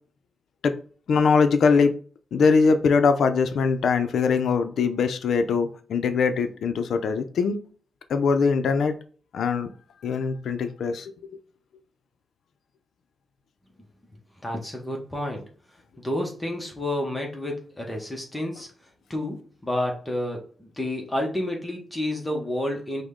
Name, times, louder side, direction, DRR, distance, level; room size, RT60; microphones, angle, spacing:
voice 1, 1.1-1.9 2.3-7.6 8.1-8.9 9.3-9.7 10.0-11.1, left 5 dB, 75° left, 8 dB, 0.5 m, -22 dB
voice 2, 14.4-15.5 16.0-18.7 19.1-23.0, left 1 dB, 10° left, 0 dB, 0.9 m, -30 dB
5.0 x 2.2 x 3.7 m, 0.42 s
wide cardioid pair, 135°, 0 cm